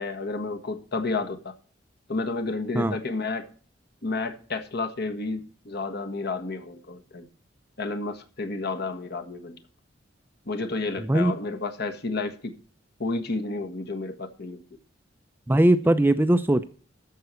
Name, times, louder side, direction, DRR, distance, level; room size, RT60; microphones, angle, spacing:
voice 1, 0.0-1.5 2.1-3.5 4.0-7.3 7.8-9.6 10.5-12.5 13.0-14.6, left 3 dB, 60° left, 1.4 m, -31 dB
voice 2, 15.5-16.7, right 1 dB, 10° right, 0.4 m, -20 dB
13.5 x 4.7 x 8.2 m
head